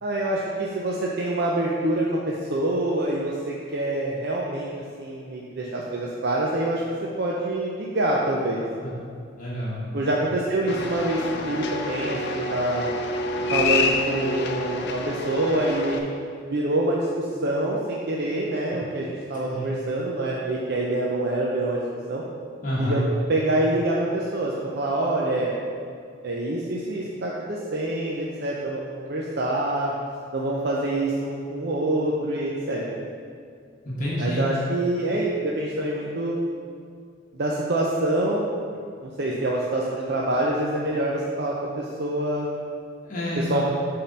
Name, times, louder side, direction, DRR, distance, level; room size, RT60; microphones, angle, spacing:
voice 1, 0.0-4.7 5.0-6.8 7.2-8.6 9.9-12.9 13.5-16.0 16.5-21.8 22.1-22.2 22.8-23.0 23.3-25.5 26.2-29.9 30.3-32.8 34.2-36.4 37.3-38.4 39.0-42.5 43.4-43.6, right 1 dB, 55° right, -3 dB, 0.7 m, -26 dB
voice 2, 9.4-9.8 19.4-19.7 22.6-23.0 33.8-34.5 43.0-43.6, equal, 45° left, -7 dB, 1.4 m, -28 dB
sound 1, 10.7-16.0, left 3 dB, 60° left, 0.6 m, -27 dB
8.5 x 3.8 x 5.4 m, 2.2 s
head